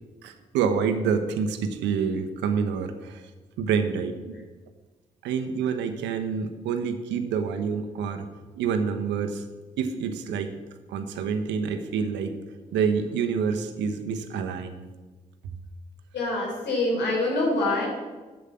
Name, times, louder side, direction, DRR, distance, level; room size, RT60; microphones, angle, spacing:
voice 1, 0.2-3.2 3.6-4.4 5.2-8.3 8.5-9.5 9.8-10.5 10.9-12.3 12.7-14.8, right 6 dB, 85° right, 7 dB, 0.9 m, -27 dB
voice 2, 16.1-17.9, left 2 dB, 75° left, -2 dB, 3.7 m, -25 dB
8.2 x 7.3 x 7.3 m, 1.3 s
hypercardioid pair, 45°, 18 cm